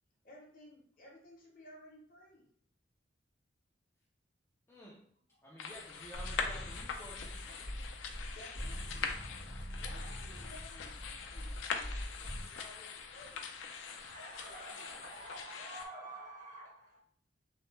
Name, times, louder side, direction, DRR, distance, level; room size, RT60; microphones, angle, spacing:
voice 1, 0.2-2.4 5.3-5.4 8.3-9.3 9.8-13.5 14.2-15.5, left 1 dB, 45° left, -1 dB, 0.7 m, -57 dB
voice 2, 4.7-5.0 5.4-7.7, equal, 15° left, -5 dB, 0.4 m, -52 dB
sound 1, 5.6-15.9, left 6 dB, 80° left, 0.4 m, -43 dB
sound 2, 6.1-12.4, equal, 65° right, 1.4 m, -43 dB
voice 3, 13.8-17.0, right 1 dB, 45° right, -3 dB, 1.0 m, -49 dB
3.1 x 2.1 x 3.1 m, 0.62 s
head